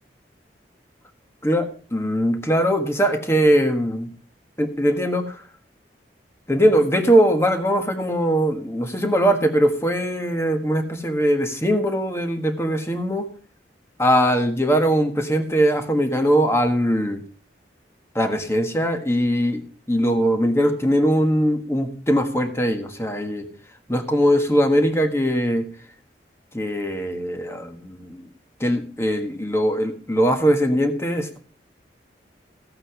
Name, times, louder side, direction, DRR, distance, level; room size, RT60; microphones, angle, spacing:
voice 1, 1.4-4.1 4.6-5.4 6.5-13.3 14.0-17.2 18.1-23.5 23.9-25.7 26.5-28.3 28.6-31.4, equal, 15° left, 6 dB, 1.5 m, -21 dB
15.0 x 8.9 x 4.9 m, 0.42 s
head